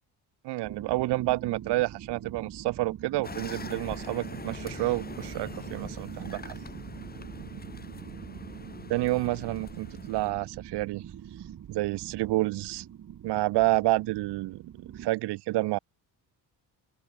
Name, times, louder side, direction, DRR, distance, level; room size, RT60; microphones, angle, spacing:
voice 1, 0.4-6.5 8.9-11.0 11.7-12.8 13.2-15.8, right 19 dB, 80° right, 0.9 m, -29 dB
sound 1, 0.6-15.1, right 10 dB, 45° right, 2.6 m, -44 dB
sound 2, 3.2-10.3, left 4 dB, 25° left, 4.7 m, -43 dB
open air
cardioid pair, 145°, 40 cm